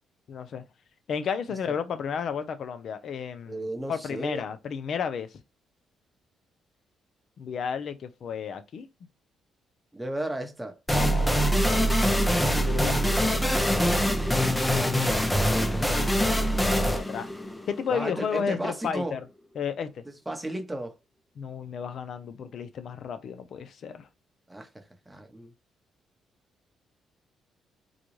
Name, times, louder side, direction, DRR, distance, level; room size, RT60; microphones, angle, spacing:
voice 1, 0.3-0.6 1.1-5.4 7.4-8.9 10.9-11.7 12.0-13.8 16.6-17.3 17.7-19.2 19.6-20.0 21.4-24.1, left 7 dB, 60° left, 0.5 m, -33 dB
voice 2, 3.5-4.5 9.9-11.3 14.5-16.1 17.9-19.2 20.3-21.0 24.5-25.5, right 1 dB, 10° right, 0.8 m, -35 dB
sound 1, 10.9-18.3, equal, 10° left, 0.5 m, -24 dB
3.9 x 2.3 x 3.1 m
cardioid pair, 90°, 0 cm